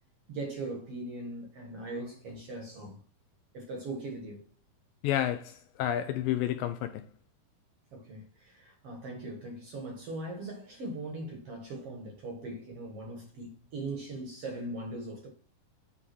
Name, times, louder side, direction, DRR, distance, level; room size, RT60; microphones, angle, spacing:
voice 1, 0.3-3.0 3.5-4.5 7.9-15.3, right 2 dB, 55° right, 1.9 m, -40 dB
voice 2, 5.0-7.1, left 11 dB, 80° left, 2.1 m, -30 dB
8.5 x 3.6 x 6.0 m
omnidirectional pair, 4.4 m